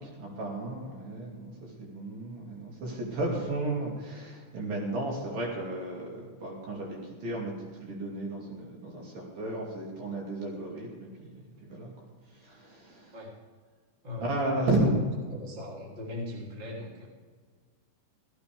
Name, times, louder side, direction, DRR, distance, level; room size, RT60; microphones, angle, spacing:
voice 1, 0.0-11.9 12.3-13.1 14.2-15.0, right 2 dB, 50° right, -3 dB, 3.9 m, -33 dB
voice 2, 14.0-14.7 15.3-17.1, left 2 dB, 15° right, -4 dB, 1.9 m, -40 dB
16.0 x 15.0 x 3.5 m, 1.5 s
omnidirectional pair, 6.0 m